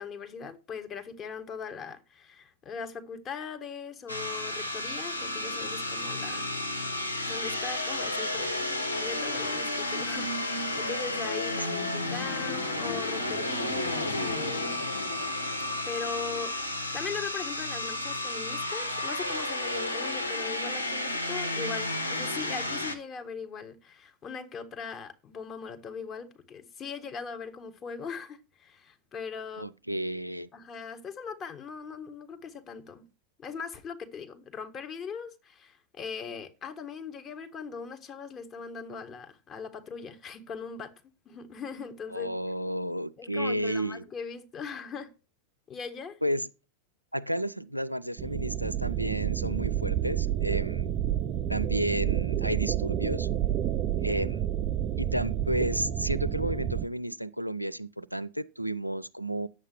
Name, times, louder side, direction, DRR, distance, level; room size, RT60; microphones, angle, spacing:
voice 1, 0.0-6.5 7.2-14.9 15.9-29.7 30.5-33.1 33.4-40.9 41.2-42.4 43.2-45.1 45.7-46.2, left 5 dB, 25° left, 1.5 m, -40 dB
sound 1, 4.1-23.0, left 2 dB, 85° left, 1.4 m, -32 dB
voice 2, 11.7-12.0 29.6-30.5 42.1-44.0 46.2-46.5 47.1-50.9 51.5-53.3 54.0-54.5 55.0-59.5, equal, 90° right, 0.5 m, -32 dB
sound 2, 48.2-56.9, right 10 dB, 35° right, 0.5 m, -29 dB
9.7 x 7.5 x 6.1 m
figure-of-eight pair, 90°, 0 cm